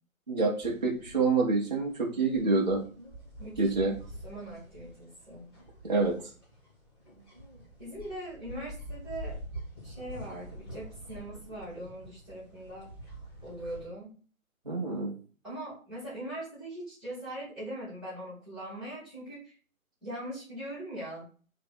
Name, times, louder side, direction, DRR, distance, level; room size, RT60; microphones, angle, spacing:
voice 1, 0.3-2.8 3.6-3.9 5.8-6.2 14.7-15.1, right 3 dB, 30° right, -2 dB, 0.5 m, -27 dB
sound 1, 0.6-13.9, right 1 dB, 15° left, 1.3 m, -46 dB
voice 2, 3.4-3.9 4.2-5.5 7.8-9.4 9.8-12.9 13.4-14.1 15.4-19.6 20.0-21.2, right 1 dB, ahead, -14 dB, 0.8 m, -41 dB
3.4 x 2.6 x 4.1 m, 0.40 s
figure-of-eight pair, 145°, 42 cm